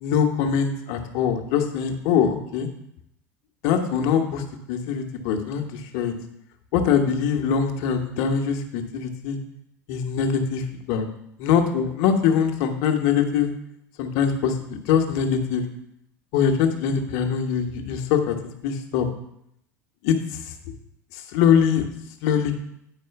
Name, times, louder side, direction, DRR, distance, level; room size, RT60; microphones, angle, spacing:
voice 1, 0.0-2.7 3.6-4.4 4.7-6.1 6.7-9.4 9.9-11.1 11.4-13.5 14.0-15.6 16.3-18.3 18.6-19.1 20.0-20.1 21.3-21.8 22.2-22.6, left 7 dB, 60° left, 4 dB, 1.2 m, -22 dB
8.9 x 4.8 x 5.8 m, 0.76 s
hypercardioid pair, 75°, 10 cm